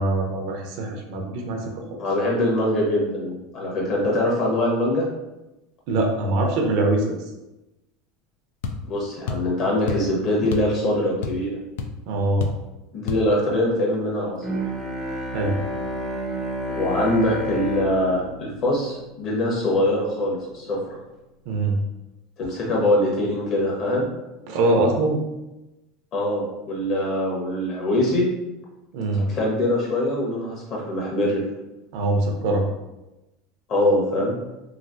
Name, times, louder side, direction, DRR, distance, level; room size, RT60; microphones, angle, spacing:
voice 1, 0.0-1.7 5.9-7.2 12.1-12.5 15.3-15.6 21.5-21.8 24.5-25.2 28.9-29.3 31.9-32.6, right 2 dB, 65° right, 1 dB, 0.6 m, -23 dB
voice 2, 2.0-5.0 8.9-11.6 12.9-14.7 16.8-21.0 22.4-24.1 26.1-28.3 29.3-31.4 33.7-34.3, left 1 dB, 45° left, -3 dB, 1.2 m, -23 dB
sound 1, 8.6-8.8 9.3-9.5 9.9-10.1 10.5-10.8 11.0-11.5 11.8-11.9 12.4-12.6 13.1-13.3, left 5 dB, 80° left, 0.4 m, -29 dB
Bowed string instrument, 14.4-19.7, equal, 20° right, 0.6 m, -31 dB
3.2 x 2.6 x 2.6 m, 0.99 s
supercardioid pair, 135°, 0 cm